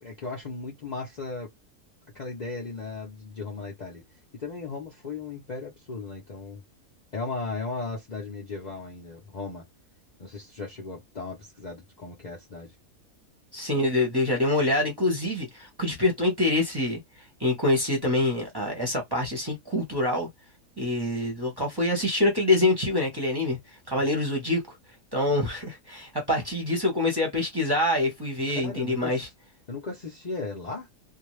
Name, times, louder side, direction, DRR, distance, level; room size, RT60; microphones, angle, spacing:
voice 1, 0.0-1.5 2.1-4.0 4.3-6.6 7.1-9.6 10.2-12.7 28.5-29.2 29.7-30.9, left 3 dB, 40° left, 0.6 m, -36 dB
voice 2, 13.5-17.0 17.4-20.3 20.8-23.6 23.9-24.6 25.1-29.3, left 2 dB, 20° right, 0.9 m, -25 dB
2.6 x 2.2 x 3.1 m
omnidirectional pair, 1.5 m